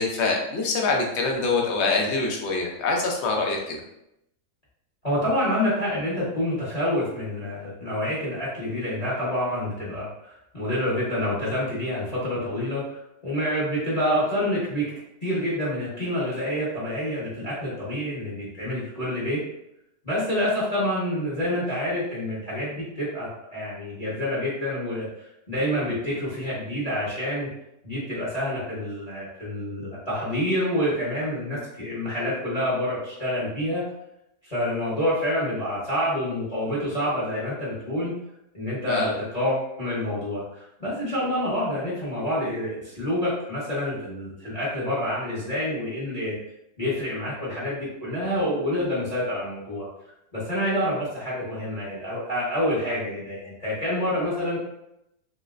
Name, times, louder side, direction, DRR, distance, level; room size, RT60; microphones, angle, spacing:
voice 1, 0.0-3.8 38.9-39.1, left 3 dB, 65° left, 0 dB, 0.7 m, -25 dB
voice 2, 5.0-14.9 15.2-19.4 20.0-27.5 27.8-33.8 34.4-38.1 38.5-46.3 46.8-49.9 50.3-54.6, left 1 dB, 30° left, -9 dB, 0.8 m, -27 dB
3.1 x 3.0 x 2.4 m, 0.84 s
omnidirectional pair, 1.8 m